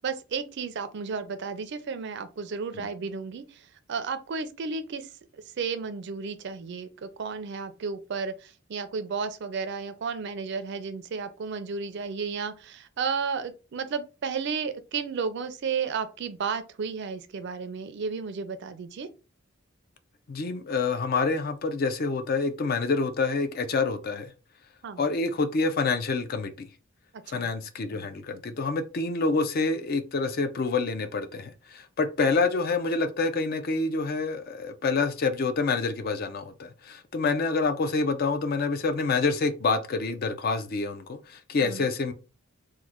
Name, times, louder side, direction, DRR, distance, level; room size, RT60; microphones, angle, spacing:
voice 1, 0.0-19.1 24.8-25.0 27.1-27.5 41.6-41.9, right 5 dB, 55° right, 0.4 m, -33 dB
voice 2, 20.3-24.3 25.0-26.7 27.3-42.1, left 4 dB, 45° left, 0.4 m, -27 dB
3.1 x 2.1 x 3.5 m
head